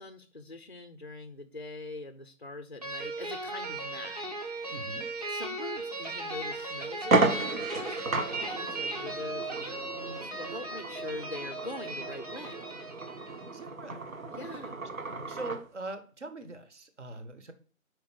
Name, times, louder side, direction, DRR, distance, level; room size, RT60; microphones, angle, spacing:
voice 1, 0.0-4.2 4.4-4.8 5.3-12.7 14.3-14.8, left 2 dB, 40° left, 8 dB, 0.4 m, -43 dB
sound 1, 2.8-13.6, right 2 dB, 30° right, 0.9 m, -37 dB
voice 2, 4.7-5.1 13.2-14.1 15.3-17.5, right 2 dB, 55° right, 9 dB, 1.1 m, -42 dB
sound 2, 6.0-6.2 6.6-6.7 7.0-15.7, right 3 dB, 80° right, 1.1 m, -33 dB
4.9 x 4.5 x 6.0 m, 0.39 s
figure-of-eight pair, 160°, 41 cm